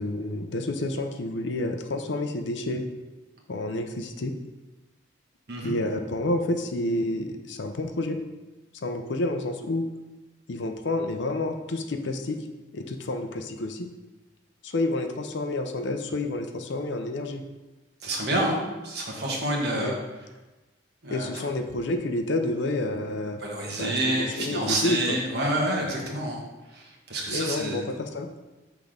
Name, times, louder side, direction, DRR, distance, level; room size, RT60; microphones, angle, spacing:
voice 1, 0.0-2.8 3.5-4.3 5.6-8.2 8.8-9.8 10.5-12.4 12.7-13.9 14.6-17.4 19.8-20.0 21.1-23.4 23.8-25.2 27.3-28.3, left 2 dB, 65° left, 6 dB, 0.5 m, -29 dB
voice 2, 18.0-18.6 18.8-19.9 21.0-21.3 23.4-26.4 26.7-27.9, right 1 dB, 55° right, -2 dB, 1.3 m, -28 dB
6.0 x 3.5 x 5.0 m, 1.1 s
head